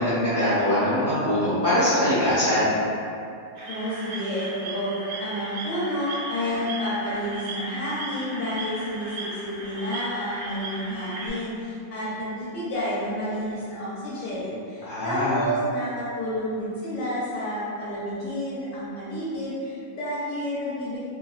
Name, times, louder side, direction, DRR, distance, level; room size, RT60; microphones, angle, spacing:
voice 1, 0.0-2.7 14.8-15.4, left 1 dB, 20° left, -14 dB, 0.8 m, -22 dB
sound 1, 3.6-11.3, right 2 dB, 75° right, 1.1 m, -36 dB
voice 2, 3.7-4.9 5.2-21.0, equal, 80° left, -10 dB, 1.2 m, -30 dB
2.8 x 2.2 x 2.2 m, 2.5 s
omnidirectional pair, 1.8 m